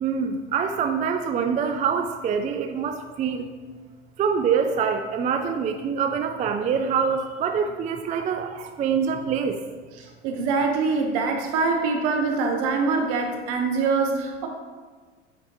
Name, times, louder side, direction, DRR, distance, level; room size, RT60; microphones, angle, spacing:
voice 1, 0.0-3.5 4.2-9.6, right 6 dB, 20° right, 6 dB, 0.4 m, -25 dB
voice 2, 10.2-14.5, right 4 dB, 60° right, 3 dB, 1.3 m, -24 dB
10.0 x 4.3 x 3.0 m, 1.4 s
hypercardioid pair, 85°, 35 cm